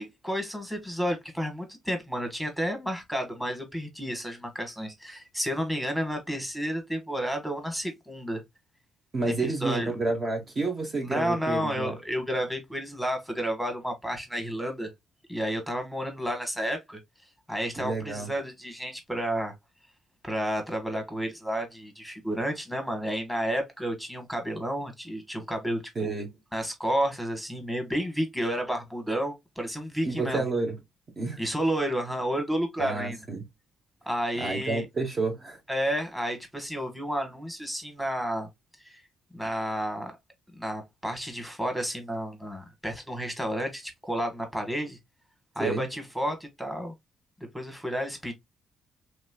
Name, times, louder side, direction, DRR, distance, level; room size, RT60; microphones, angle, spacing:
voice 1, 0.0-8.4 9.2-9.3 9.6-9.9 11.0-14.9 15.3-17.0 17.5-19.5 20.2-26.1 26.5-30.4 31.4-33.2 34.0-34.9 35.7-38.5 38.8-39.0 39.3-40.1 40.5-45.0 45.5-46.9 47.5-48.3, equal, 5° right, 1.3 m, -31 dB
voice 2, 9.1-11.9 17.8-18.3 25.9-26.3 30.0-30.8 31.2-31.4 32.8-33.4 34.4-35.6 45.6-45.8, right 3 dB, 40° right, 1.0 m, -30 dB
3.2 x 3.0 x 2.2 m
cardioid pair, 90°, 0 cm